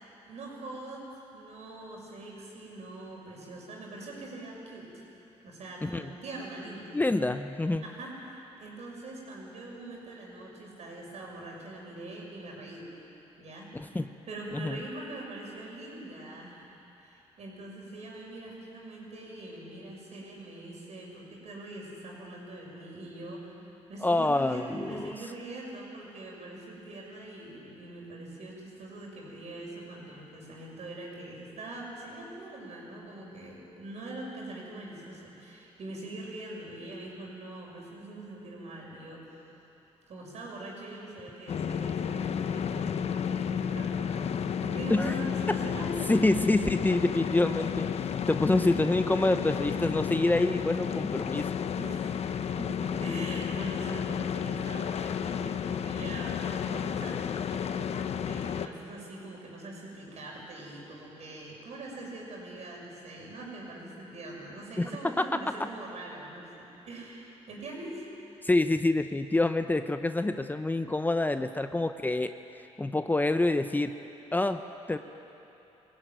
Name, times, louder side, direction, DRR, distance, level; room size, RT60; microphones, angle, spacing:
voice 1, 0.3-1.0 1.3-5.0 5.4-7.0 7.8-12.9 13.4-13.7 14.3-16.7 17.0-23.5 23.9-39.2 40.1-44.3 44.6-45.9 51.8-68.3, right 2 dB, 65° right, -2 dB, 6.5 m, -43 dB
voice 2, 5.8-6.1 6.9-7.8 13.7-14.1 14.5-14.8 24.0-25.1 44.9-45.1 46.1-47.9 48.3-51.5 64.8-65.4 68.4-72.3 72.8-73.9 74.3-74.6 74.9-75.0, left 2 dB, 15° left, 9 dB, 0.7 m, -26 dB
sound 1, 41.5-58.7, left 7 dB, 60° left, 0.9 m, -32 dB
22.0 x 16.0 x 9.3 m, 3.0 s
cardioid pair, 85°, 12 cm